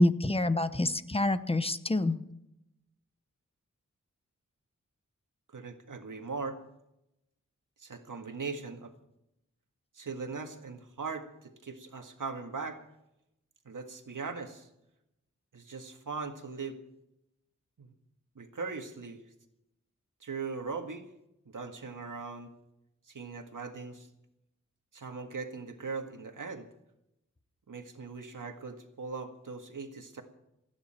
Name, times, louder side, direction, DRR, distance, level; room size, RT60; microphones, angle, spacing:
voice 1, 0.0-2.1, left 1 dB, 20° left, 12 dB, 0.9 m, -26 dB
voice 2, 5.5-6.6 7.8-8.9 9.9-12.8 13.6-14.7 15.5-16.8 17.8-17.9 18.3-19.2 20.2-21.1 21.4-22.5 23.1-24.1 24.9-26.7 27.7-30.2, right 4 dB, 85° right, 5 dB, 1.8 m, -40 dB
28.5 x 10.0 x 4.4 m, 0.86 s
wide cardioid pair, 80°, 31 cm